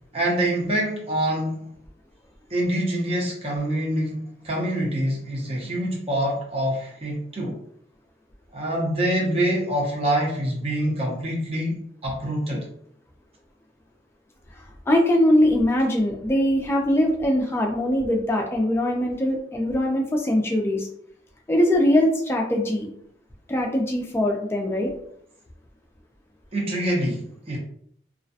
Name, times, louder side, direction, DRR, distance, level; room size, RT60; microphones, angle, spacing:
voice 1, 0.1-1.7 2.5-7.6 8.5-12.7 26.5-27.6, right 1 dB, 30° right, -3 dB, 0.6 m, -25 dB
voice 2, 14.9-20.9 21.5-22.9 23.5-24.9, left 1 dB, 15° left, 1 dB, 0.3 m, -21 dB
2.3 x 2.1 x 2.6 m, 0.68 s
head